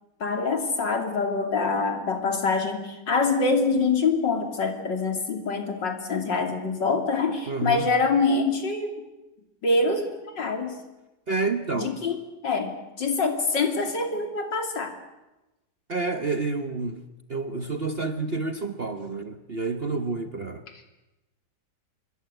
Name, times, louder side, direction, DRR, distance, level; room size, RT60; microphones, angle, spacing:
voice 1, 0.2-9.1 9.6-10.8 11.7-12.2 12.4-15.0, left 4 dB, 70° left, 5 dB, 3.6 m, -25 dB
voice 2, 7.5-7.9 11.3-12.0 15.9-17.0 17.3-20.6, right 3 dB, 40° right, 8 dB, 1.1 m, -29 dB
26.5 x 21.5 x 8.0 m, 1.0 s
omnidirectional pair, 2.0 m